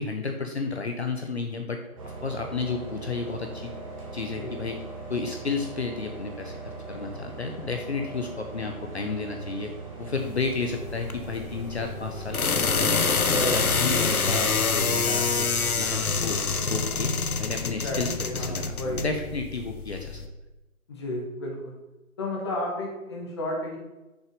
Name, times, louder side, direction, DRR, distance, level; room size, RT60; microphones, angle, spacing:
voice 1, 0.0-1.8 2.2-3.8 4.1-4.8 5.1-6.6 6.9-9.7 10.0-12.9 13.3-16.4 16.7-17.1 17.4-20.2, left 4 dB, 50° left, 4 dB, 0.8 m, -32 dB
sound 1, 2.0-17.5, right 3 dB, 25° right, 1.5 m, -40 dB
sound 2, 10.2-20.3, left 5 dB, 80° left, 0.9 m, -27 dB
voice 2, 17.6-19.0 20.9-21.8 22.2-23.8, left 1 dB, 20° left, -1 dB, 1.2 m, -32 dB
6.6 x 6.3 x 5.3 m, 1.1 s
figure-of-eight pair, 150°, 43 cm